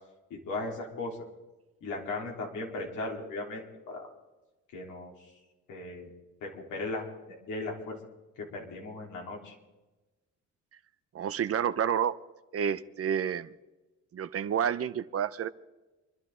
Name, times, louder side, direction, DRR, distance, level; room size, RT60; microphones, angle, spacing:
voice 1, 0.3-1.2 1.8-4.1 4.7-5.3 5.7-6.1 6.4-8.0 8.4-9.6, left 2 dB, 80° left, -1 dB, 3.9 m, -37 dB
voice 2, 11.1-12.2 12.5-13.5 14.1-15.5, right 8 dB, 50° right, 13 dB, 0.8 m, -29 dB
27.0 x 11.5 x 3.8 m, 1.1 s
cardioid pair, 90°, 30 cm